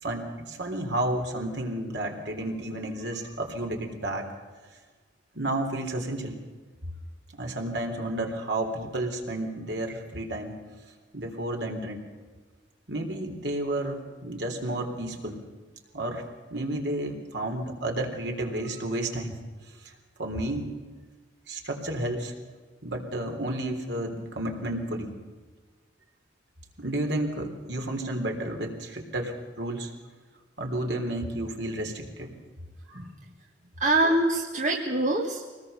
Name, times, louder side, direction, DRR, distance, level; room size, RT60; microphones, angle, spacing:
voice 1, 0.0-4.3 5.4-6.3 7.4-10.6 11.1-12.0 12.9-15.4 15.9-16.2 16.5-19.3 20.2-20.7 21.5-22.3 22.8-25.1 26.8-29.9 30.6-32.3 32.9-33.0, right 1 dB, 70° right, 3 dB, 3.6 m, -31 dB
voice 2, 33.8-35.5, right 2 dB, 40° right, 0 dB, 1.8 m, -24 dB
24.0 x 19.5 x 7.0 m, 1.4 s
head